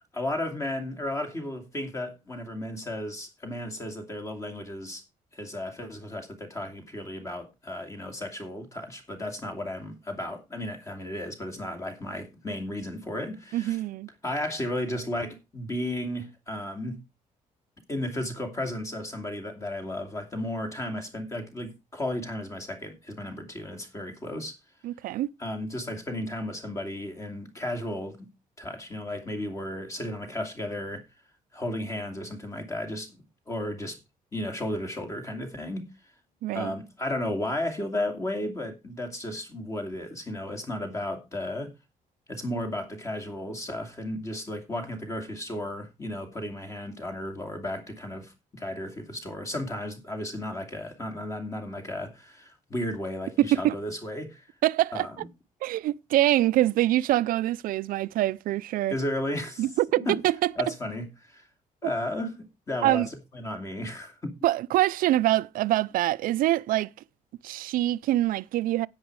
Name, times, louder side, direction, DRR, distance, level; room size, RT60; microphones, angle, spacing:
voice 1, 0.1-5.0 5.3-13.8 14.2-17.0 17.9-24.5 25.4-28.3 28.6-31.0 31.5-34.0 34.3-35.9 36.5-41.7 42.3-54.5 54.9-55.3 58.9-59.7 60.0-60.2 60.6-61.4 61.8-64.3, left 1 dB, 20° left, 2.6 m, -34 dB
voice 2, 13.5-14.1 24.8-25.3 36.4-36.7 53.4-53.8 54.6-55.1 55.6-58.9 59.6-60.5 61.8-61.9 62.8-63.1 64.4-66.9 67.4-68.9, right 14 dB, 85° right, 0.5 m, -24 dB
10.0 x 9.1 x 4.7 m
cardioid pair, 170°, 14 cm